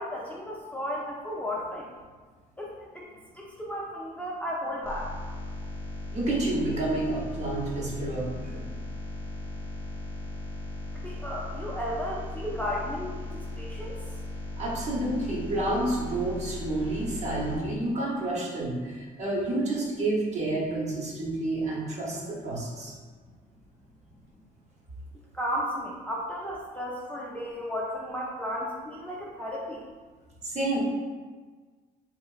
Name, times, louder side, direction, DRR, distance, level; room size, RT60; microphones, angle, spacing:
voice 1, 0.0-1.9 2.6-3.1 3.3-5.1 10.9-14.0 25.3-29.8, equal, 10° left, -5 dB, 0.4 m, -34 dB
sound 1, 4.8-17.6, left 1 dB, 15° right, 0.8 m, -37 dB
voice 2, 6.1-8.6 14.6-22.9 30.4-30.8, right 2 dB, 40° right, -3 dB, 0.8 m, -29 dB
3.1 x 2.8 x 2.4 m, 1.5 s
cardioid pair, 110°, 17 cm